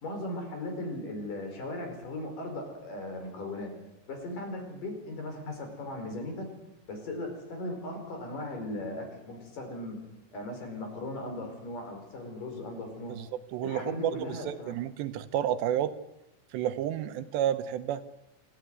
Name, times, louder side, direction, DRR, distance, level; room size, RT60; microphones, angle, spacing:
voice 1, 0.0-3.7 4.1-6.5 6.9-10.0 10.3-13.2 13.6-14.8 17.0-17.1, left 1 dB, 50° left, 4 dB, 6.4 m, -38 dB
voice 2, 13.5-14.1 14.5-15.9 16.5-18.0, right 11 dB, 85° right, 11 dB, 3.2 m, -30 dB
25.5 x 15.5 x 9.6 m, 0.90 s
omnidirectional pair, 4.9 m